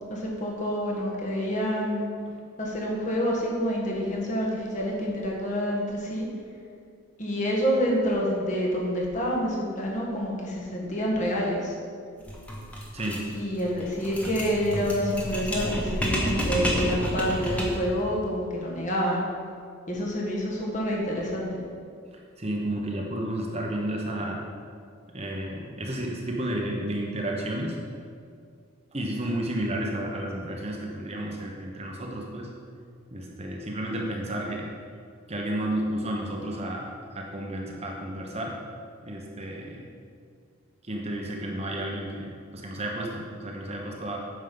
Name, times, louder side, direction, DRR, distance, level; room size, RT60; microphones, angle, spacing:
voice 1, 0.1-2.1 2.6-6.3 7.2-11.7 13.3-19.2 19.9-21.5, equal, 35° left, -3 dB, 1.7 m, -27 dB
sound 1, 12.2-17.9, equal, 5° left, 1.2 m, -30 dB
voice 2, 12.9-13.2 22.1-24.4 25.1-27.8 28.9-32.5 33.1-34.7 35.3-38.6 39.0-39.9 40.8-44.2, right 1 dB, 30° right, -1 dB, 1.0 m, -32 dB
9.4 x 6.4 x 5.4 m, 2.2 s
head